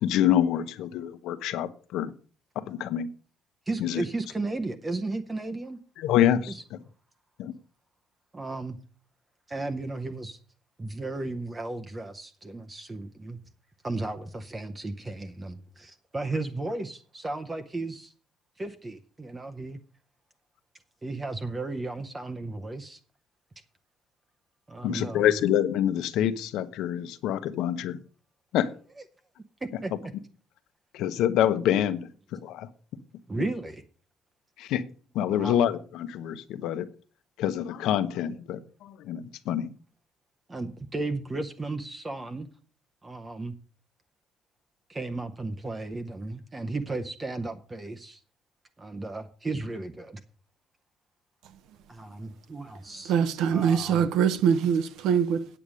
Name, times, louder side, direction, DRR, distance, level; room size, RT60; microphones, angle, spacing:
voice 1, 0.0-2.1 2.5-3.1 3.8-4.0 6.0-6.5 7.4-7.5 24.8-28.0 28.5-28.7 30.9-32.0 32.3-32.7 34.6-34.9 35.1-36.9 37.4-39.7, left 10 dB, 70° left, 0.9 m, -26 dB
voice 2, 3.7-5.8 6.5-6.6 8.3-8.8 9.5-10.4 10.8-13.4 13.8-18.1 18.6-19.8 21.0-23.0 24.7-25.4 29.6-30.1 33.3-33.8 35.3-35.6 40.5-42.5 43.0-43.5 44.9-48.2 48.8-50.2 51.9-53.1 53.5-54.1, right 2 dB, 15° right, 0.7 m, -34 dB
voice 3, 53.1-55.5, right 7 dB, 70° right, 0.8 m, -23 dB
8.8 x 8.5 x 6.3 m
cardioid pair, 165°, 0 cm